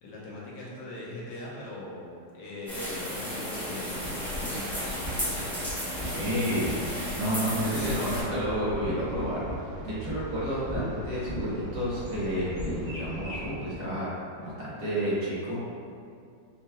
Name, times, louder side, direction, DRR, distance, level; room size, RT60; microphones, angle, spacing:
voice 1, 0.0-2.1 2.3-5.0, left 1 dB, 75° left, -6 dB, 1.4 m, -40 dB
sound 1, 2.7-8.2, equal, ahead, 0.8 m, -34 dB
sound 2, 4.0-7.2 7.6-8.2 8.5-10.2 10.7-10.8 11.2-11.8 12.5-12.8, left 1 dB, 35° left, 1.2 m, -37 dB
voice 2, 6.0-9.4 9.8-14.1 14.4-15.7, equal, 55° right, -8 dB, 1.2 m, -30 dB
sound 3, 7.7-13.5, right 1 dB, 80° right, 1.7 m, -41 dB
5.6 x 2.9 x 2.3 m, 2.3 s
omnidirectional pair, 1.9 m